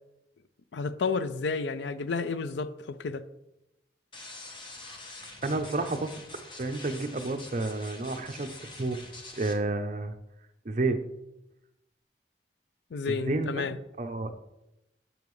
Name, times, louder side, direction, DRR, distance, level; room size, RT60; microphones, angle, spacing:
voice 1, 0.7-3.2 12.9-13.8, left 4 dB, 85° left, 14 dB, 0.4 m, -31 dB
sound 1, 4.1-9.6, left 2 dB, 30° left, 0.9 m, -45 dB
voice 2, 5.4-6.1 6.6-9.0 9.4-10.1 10.6-11.0 13.1-13.7 14.0-14.3, right 2 dB, 40° right, 7 dB, 0.6 m, -30 dB
7.7 x 7.2 x 3.2 m, 0.90 s
head